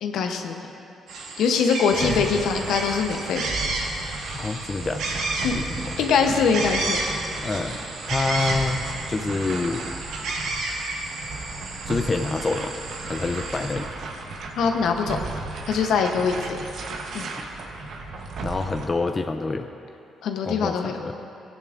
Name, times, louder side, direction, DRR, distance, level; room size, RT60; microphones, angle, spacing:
voice 1, 0.0-0.5 1.4-3.4 5.4-5.5 6.0-7.0 14.6-15.2 15.7-16.6 17.1-17.3 20.2-21.0, left 5 dB, 80° left, 4 dB, 0.8 m, -23 dB
sound 1, 1.1-13.8, right 2 dB, 85° right, 1.4 m, -32 dB
sound 2, 1.9-18.9, right 3 dB, 70° right, 0.9 m, -35 dB
voice 2, 2.0-2.3 4.3-5.1 5.5-6.0 7.4-7.8 8.1-9.8 11.9-12.7 13.0-13.9 17.4-17.5 18.4-19.7 20.4-21.2, left 3 dB, 25° left, 6 dB, 0.4 m, -27 dB
15.5 x 9.8 x 2.5 m, 2.7 s
cardioid pair, 90°, 0 cm